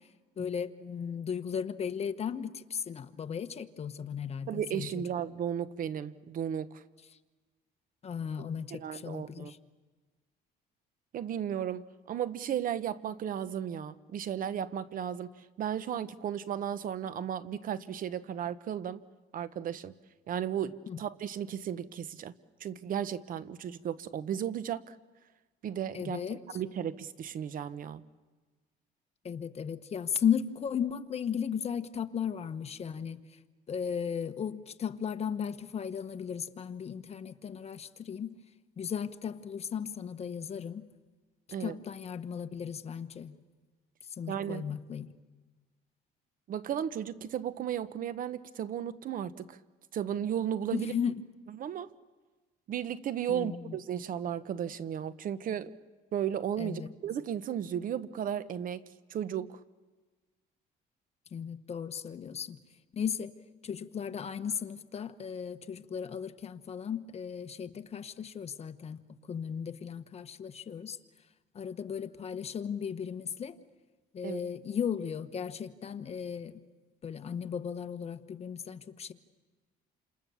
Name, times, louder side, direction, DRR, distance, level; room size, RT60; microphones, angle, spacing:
voice 1, 0.4-5.0 8.0-9.6 20.9-21.0 25.9-26.4 29.2-33.2 33.7-38.3 38.8-40.9 41.6-43.3 44.2-45.1 50.7-51.1 53.3-53.8 56.6-56.9 61.3-62.6 62.9-63.3 63.6-69.0 69.3-71.0 71.5-73.6 74.1-76.5 77.0-79.1, left 7 dB, 40° left, 9 dB, 1.2 m, -36 dB
voice 2, 4.5-6.8 8.7-9.5 11.1-11.8 12.1-15.3 15.6-19.0 19.3-19.9 20.3-22.3 22.6-25.0 25.6-28.0 41.5-41.8 44.3-44.6 46.5-49.6 49.9-50.9 51.5-51.9 52.7-55.7 56.1-58.8 59.1-59.6 74.2-74.4, right 9 dB, 55° right, 14 dB, 1.0 m, -34 dB
28.5 x 27.5 x 7.1 m, 1.3 s
cardioid pair, 110°, 17 cm